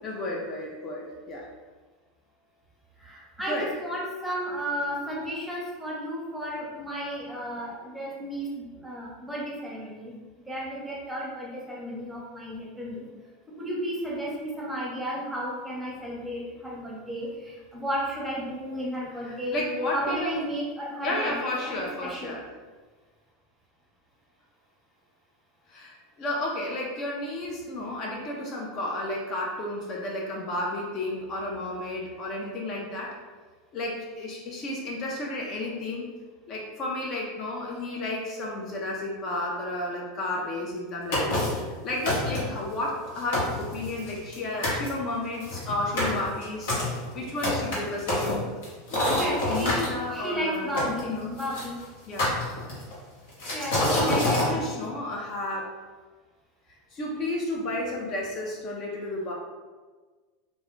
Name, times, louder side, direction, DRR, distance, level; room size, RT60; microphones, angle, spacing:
voice 1, 0.0-1.5 3.5-3.7 19.2-20.4 21.0-22.4 25.7-33.2 33.7-36.0 36.5-46.7 47.1-48.5 48.9-51.3 52.1-52.3 53.9-55.8 56.9-59.3, left 1 dB, 45° left, -2 dB, 0.4 m, -32 dB
voice 2, 3.0-10.1 10.5-13.0 13.6-21.5 21.8-22.3 49.1-49.8 50.1-51.8 53.5-54.8, equal, 5° right, -4 dB, 0.7 m, -33 dB
sound 1, 41.1-41.7 42.0-42.6 43.0-43.1 43.3-44.4 44.6-44.9 45.4-49.9 50.8-51.6 52.2-52.9 53.4-54.5, left 1 dB, 80° left, 0.9 m, -27 dB
2.2 x 2.0 x 3.0 m, 1.4 s
supercardioid pair, 115°, 0 cm